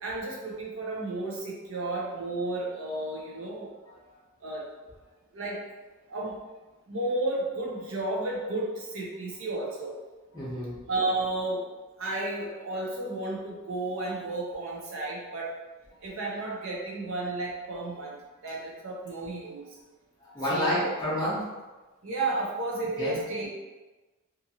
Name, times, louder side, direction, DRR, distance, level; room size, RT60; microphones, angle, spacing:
voice 1, 0.0-3.7 4.4-4.6 5.3-5.6 6.1-6.3 6.9-9.9 10.9-11.6 12.0-15.5 16.0-18.2 18.4-19.6 20.5-20.9 22.0-23.5, right 2 dB, 65° right, -4 dB, 0.7 m, -32 dB
voice 2, 10.3-10.8 20.2-21.5 23.0-23.2, left 1 dB, 15° left, -8 dB, 0.8 m, -29 dB
2.6 x 2.6 x 2.8 m, 1.2 s
head